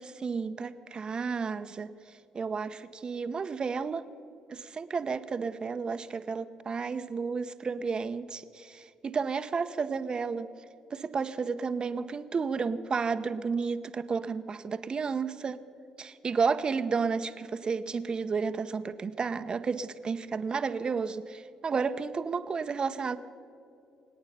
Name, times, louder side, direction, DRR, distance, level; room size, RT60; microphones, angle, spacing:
voice 1, 0.0-1.9 2.3-4.0 4.5-10.5 10.9-15.6 16.0-23.2, right 5 dB, 40° right, 11 dB, 0.9 m, -32 dB
26.5 x 8.8 x 5.7 m, 2.6 s
hypercardioid pair, 55°, 2 cm